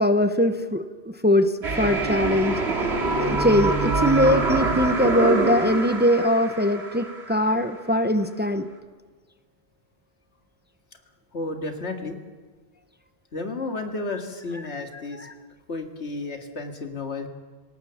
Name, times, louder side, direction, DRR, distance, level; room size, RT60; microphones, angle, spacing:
voice 1, 0.0-2.6 3.2-8.7, left 1 dB, 10° right, 9 dB, 0.8 m, -21 dB
sound 1, 1.6-7.6, right 3 dB, 80° right, 2.6 m, -25 dB
voice 2, 11.3-12.2 13.3-15.3 15.7-17.3, left 3 dB, 90° left, 4 dB, 2.4 m, -32 dB
26.5 x 17.5 x 7.1 m, 1.4 s
omnidirectional pair, 1.1 m